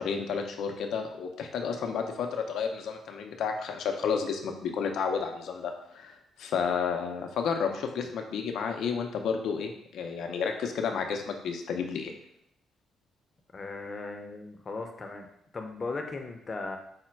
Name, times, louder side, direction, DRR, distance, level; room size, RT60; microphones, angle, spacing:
voice 1, 0.0-12.1, left 6 dB, 75° left, 4 dB, 0.6 m, -31 dB
voice 2, 13.5-15.3 15.5-16.8, left 3 dB, 35° left, 4 dB, 0.7 m, -37 dB
4.9 x 2.2 x 4.4 m, 0.74 s
cardioid pair, 90°, 0 cm